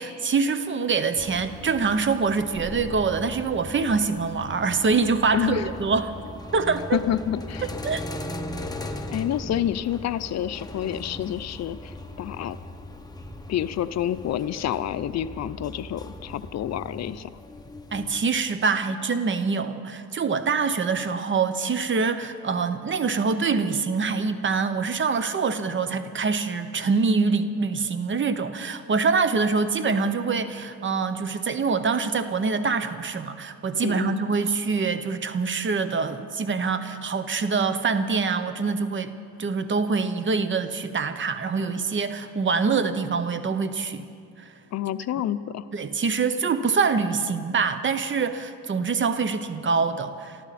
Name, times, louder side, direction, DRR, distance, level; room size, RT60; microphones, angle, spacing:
voice 1, 0.0-6.1 6.5-7.0 7.6-8.0 17.9-39.1 39.4-44.0 45.7-50.4, right 5 dB, 40° right, 11 dB, 1.0 m, -25 dB
sound 1, 1.2-18.2, left 1 dB, 15° left, 1.3 m, -39 dB
voice 2, 5.3-5.7 6.9-7.7 9.1-12.6 13.5-17.4 33.8-34.2 44.7-45.7, left 11 dB, 60° left, 14 dB, 0.6 m, -28 dB
23.5 x 14.0 x 4.2 m, 2.3 s
cardioid pair, 90°, 30 cm